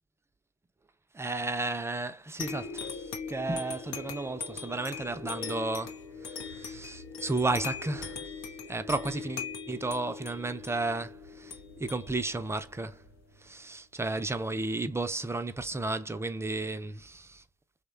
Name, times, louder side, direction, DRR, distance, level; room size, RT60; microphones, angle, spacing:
voice 1, 1.1-8.3 8.6-13.0 13.4-17.4, right 2 dB, 10° right, 0.3 m, -33 dB
sound 1, 2.4-13.5, left 5 dB, 90° left, 0.6 m, -41 dB
2.9 x 2.1 x 2.3 m
hypercardioid pair, 55°, 30 cm